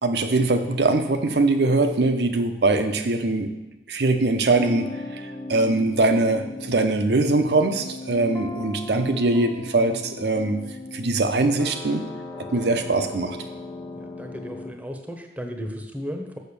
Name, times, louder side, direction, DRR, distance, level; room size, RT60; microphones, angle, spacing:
voice 1, 0.0-3.5 3.9-4.9 5.1-5.2 5.5-10.6 10.9-12.0 12.5-13.4, right 2 dB, 65° right, 7 dB, 0.8 m, -22 dB
sound 1, 4.5-14.7, left 2 dB, 20° left, 0.6 m, -37 dB
voice 2, 14.0-16.4, equal, 10° right, 4 dB, 0.9 m, -35 dB
6.7 x 6.3 x 6.8 m, 0.96 s
head